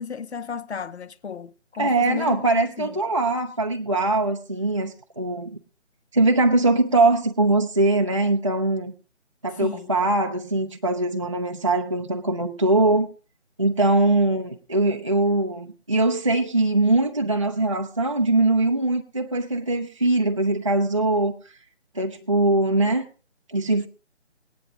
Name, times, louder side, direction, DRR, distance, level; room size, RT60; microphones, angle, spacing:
voice 1, 0.0-2.4 2.8-2.9 9.6-9.9, left 6 dB, 65° left, 0.9 m, -33 dB
voice 2, 1.8-5.5 6.1-8.9 9.4-13.1 13.6-21.3 21.9-23.0 23.5-23.9, right 2 dB, 25° right, 0.5 m, -22 dB
18.0 x 9.9 x 3.7 m
figure-of-eight pair, 165°, 35 cm